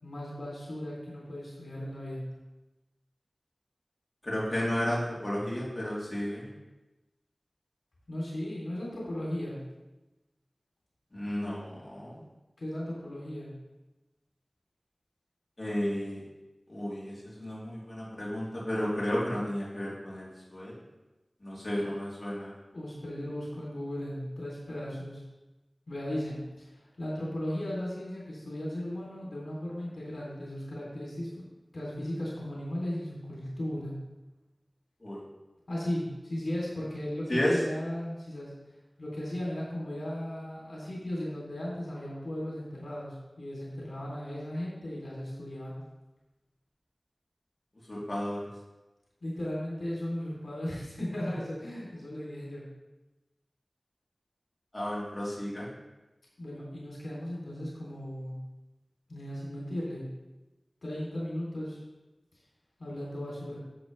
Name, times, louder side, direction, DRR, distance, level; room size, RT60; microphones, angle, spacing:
voice 1, 0.0-2.2 8.1-9.6 12.6-13.5 22.7-25.2 25.9-31.4 31.7-34.0 35.7-38.5 39.0-45.8 49.2-52.7 56.4-58.4 59.1-60.0 60.8-61.8 62.8-63.6, left 1 dB, 90° left, -5 dB, 3.0 m, -36 dB
voice 2, 4.2-6.5 11.1-12.2 15.6-16.2 16.7-20.7 21.4-22.5 35.0-35.2 37.3-37.6 47.9-48.4 54.7-55.7, left 1 dB, 45° left, -7 dB, 3.1 m, -32 dB
11.0 x 7.4 x 3.3 m, 1.1 s
wide cardioid pair, 50°, 0 cm